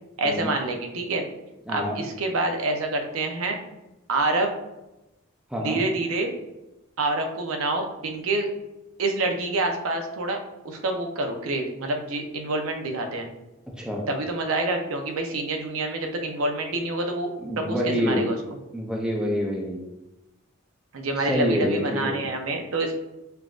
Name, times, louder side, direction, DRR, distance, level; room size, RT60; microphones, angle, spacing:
voice 1, 0.2-1.2 1.7-3.6 4.1-4.5 5.6-6.3 7.0-8.5 9.0-10.4 10.6-13.3 14.1-17.3 17.6-18.6 20.9-22.9, right 2 dB, 85° right, 4 dB, 0.6 m, -27 dB
voice 2, 1.7-2.0 5.5-5.8 13.8-14.0 17.4-18.2 18.7-19.8 21.2-22.2, equal, 5° right, -1 dB, 0.5 m, -26 dB
5.5 x 2.5 x 2.4 m, 0.97 s
head